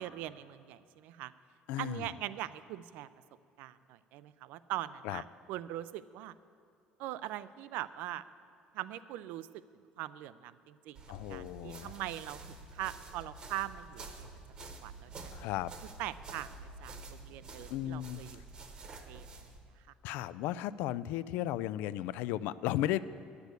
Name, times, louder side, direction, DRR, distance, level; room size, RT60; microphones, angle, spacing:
voice 1, 0.0-1.3 1.8-3.1 3.6-6.3 7.0-8.2 8.7-9.6 10.0-11.0 11.3-14.3 14.8-15.3 16.0-18.4 19.1-19.3, right 14 dB, 75° right, 15 dB, 0.4 m, -41 dB
voice 2, 1.7-2.1 5.0-5.2 11.1-11.9 15.3-15.7 17.7-18.2 20.0-23.0, left 13 dB, 80° left, 17 dB, 0.3 m, -35 dB
sound 1, 10.9-19.6, right 3 dB, 30° right, 0.9 m, -49 dB
10.5 x 8.2 x 8.2 m, 2.5 s
cardioid pair, 175°, 3 cm